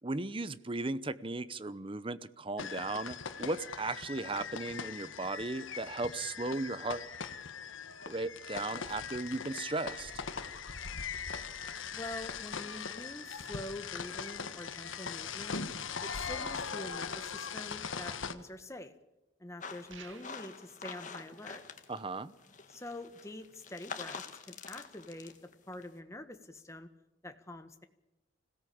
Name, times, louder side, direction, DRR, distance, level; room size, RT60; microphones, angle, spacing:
voice 1, 0.0-7.0 8.1-10.1 21.9-22.3, right 2 dB, 25° right, 15 dB, 0.8 m, -36 dB
sound 1, 2.6-18.3, left 6 dB, 85° left, 1.4 m, -40 dB
voice 2, 11.9-15.6 16.0-18.9 19.4-21.6 22.7-25.3 25.7-26.9 27.2-27.8, left 1 dB, 15° left, 7 dB, 1.5 m, -45 dB
sound 2, 19.6-22.1 22.4-25.9, left 5 dB, 40° left, 1.8 m, -47 dB
sound 3, 19.9-20.6, right 6 dB, 75° right, 1.9 m, -53 dB
25.5 x 17.5 x 8.7 m, 0.96 s
head